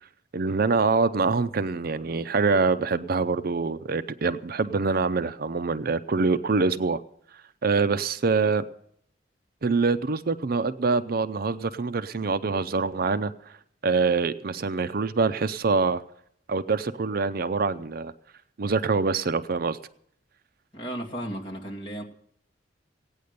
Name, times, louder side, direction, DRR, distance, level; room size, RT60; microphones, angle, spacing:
voice 1, 0.3-7.0 7.6-8.6 9.6-13.3 13.8-16.0 16.5-18.1 18.6-19.8, right 4 dB, 55° right, 12 dB, 0.5 m, -25 dB
voice 2, 20.7-22.0, right 1 dB, 30° left, -2 dB, 2.3 m, -34 dB
16.0 x 9.5 x 6.7 m, 0.69 s
head